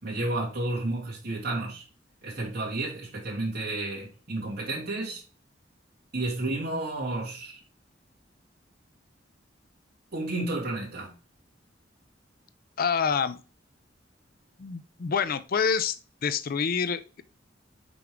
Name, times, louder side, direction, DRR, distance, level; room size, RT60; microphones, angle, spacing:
voice 1, 0.0-1.8 2.2-5.2 6.1-7.6 10.1-11.1, right 2 dB, 60° right, 2.8 m, -31 dB
voice 2, 12.8-13.4 14.6-17.2, left 6 dB, 50° left, 0.5 m, -27 dB
6.0 x 4.7 x 3.6 m
head